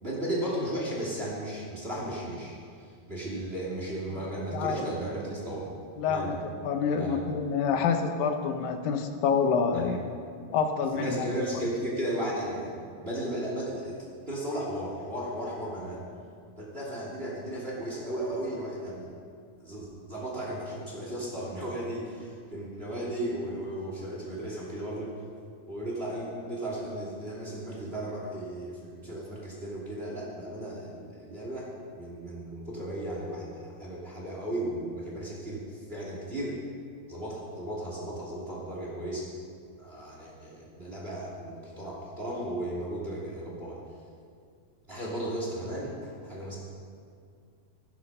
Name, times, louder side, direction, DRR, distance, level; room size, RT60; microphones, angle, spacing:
voice 1, 0.0-2.6 3.1-5.7 6.1-6.4 7.0-7.2 9.7-9.9 10.9-12.8 13.0-16.0 16.6-19.1 19.6-25.1 25.7-36.6 37.1-39.3 39.8-43.8 44.9-46.6, right 1 dB, 20° right, -4 dB, 2.4 m, -35 dB
voice 2, 4.5-4.9 6.0-6.4 6.6-10.0 10.5-11.3, left 6 dB, 80° left, 6 dB, 2.7 m, -27 dB
16.0 x 11.5 x 5.5 m, 2.3 s
omnidirectional pair, 4.0 m